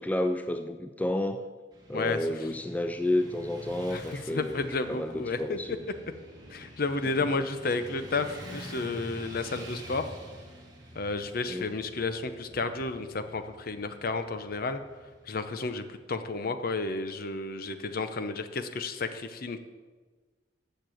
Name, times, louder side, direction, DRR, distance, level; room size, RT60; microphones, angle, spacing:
voice 1, 0.0-1.5 1.9-5.8 11.5-11.7, left 1 dB, 10° left, 7 dB, 0.3 m, -31 dB
Motorcycle / Traffic noise roadway noise, 1.7-15.8, right 1 dB, 20° right, 1.7 m, -47 dB
voice 2, 1.9-2.5 3.9-4.0 4.3-5.6 6.5-10.1 11.0-14.8 15.3-19.6, left 3 dB, 50° left, 10 dB, 0.7 m, -32 dB
7.5 x 6.7 x 7.7 m, 1.4 s
head